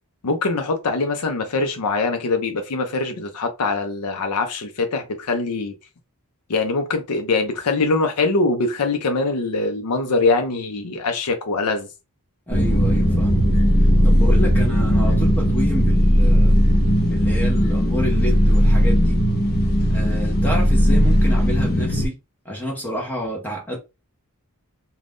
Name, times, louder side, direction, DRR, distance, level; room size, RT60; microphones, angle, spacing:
voice 1, 0.2-5.7 6.5-11.9, left 3 dB, 90° left, 0.5 m, -23 dB
sound 1, 12.5-22.1, equal, 45° left, 0.8 m, -17 dB
voice 2, 12.5-13.5 13.8-16.6 17.1-19.2 19.9-22.2 22.4-23.8, left 1 dB, 10° left, 0.7 m, -29 dB
2.5 x 2.2 x 3.4 m
head